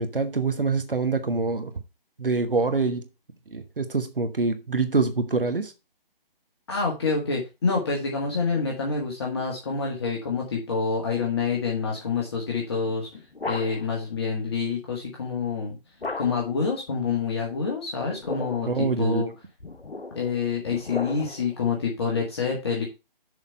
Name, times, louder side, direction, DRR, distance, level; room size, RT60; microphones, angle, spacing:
voice 1, 0.0-1.7 2.2-3.1 3.5-5.7 18.6-19.3, right 4 dB, 65° right, 1.1 m, -25 dB
voice 2, 6.7-13.1 13.5-15.8 16.2-19.3 20.2-22.8, left 5 dB, 25° left, 1.6 m, -27 dB
sound 1, 13.1-14.0 16.0-16.6 18.0-18.8 19.6-21.5, left 3 dB, 85° left, 0.9 m, -36 dB
6.6 x 5.0 x 6.5 m
figure-of-eight pair, 150°, 29 cm